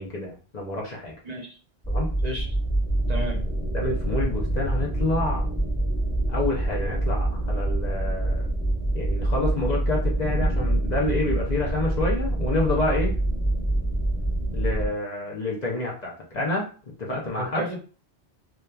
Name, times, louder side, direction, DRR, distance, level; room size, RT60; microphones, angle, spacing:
voice 1, 0.0-1.1 1.9-2.1 3.7-5.4 6.3-8.5 8.9-13.1 14.5-16.7 17.0-17.6, left 2 dB, 45° left, -2 dB, 0.7 m, -28 dB
voice 2, 1.2-1.6 2.2-2.5 3.1-3.4 17.4-17.8, right 1 dB, 50° right, -1 dB, 0.6 m, -32 dB
sound 1, 1.8-14.9, right 1 dB, 5° left, 1.1 m, -25 dB
2.8 x 2.3 x 2.3 m, 0.38 s
omnidirectional pair, 1.1 m